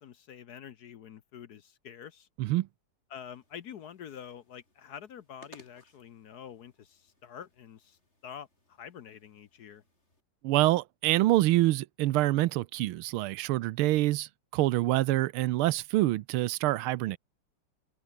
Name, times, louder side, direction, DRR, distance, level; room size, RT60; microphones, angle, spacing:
voice 1, 0.0-2.3 3.1-9.8, left 8 dB, 60° left, 1.2 m, -47 dB
sound 1, 3.2-10.2, left 2 dB, 30° left, 6.4 m, -62 dB
voice 2, 10.4-17.2, right 16 dB, 85° right, 1.5 m, -26 dB
omnidirectional pair, 2.3 m